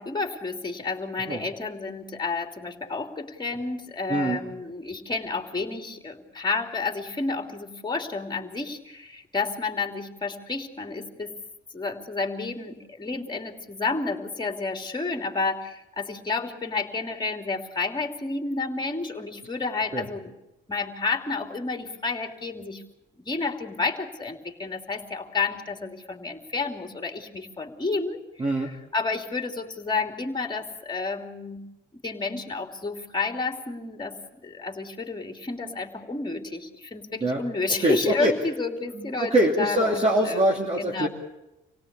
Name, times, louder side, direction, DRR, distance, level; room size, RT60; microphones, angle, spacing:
voice 1, 0.0-11.3 11.7-20.3 20.7-22.8 23.2-31.6 32.0-40.4 40.8-41.1, left 3 dB, 20° left, 5 dB, 3.1 m, -30 dB
voice 2, 4.1-4.4 19.9-20.1 28.4-28.7 37.2-37.4 37.8-38.3 38.9-41.1, right 1 dB, 30° right, -1 dB, 2.8 m, -23 dB
26.5 x 17.5 x 8.3 m, 0.95 s
cardioid pair, 90°, 20 cm